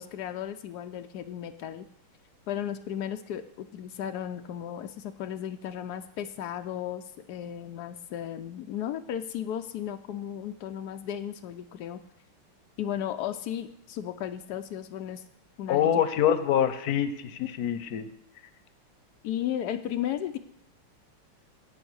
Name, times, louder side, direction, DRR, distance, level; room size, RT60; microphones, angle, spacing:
voice 1, 0.0-1.9 2.5-7.0 7.3-12.0 12.8-15.2 15.6-16.0 19.2-20.4, left 10 dB, 85° left, 7 dB, 0.9 m, -35 dB
voice 2, 15.7-18.1, left 9 dB, 60° left, 12 dB, 1.0 m, -25 dB
17.0 x 5.7 x 6.2 m, 0.77 s
omnidirectional pair, 2.4 m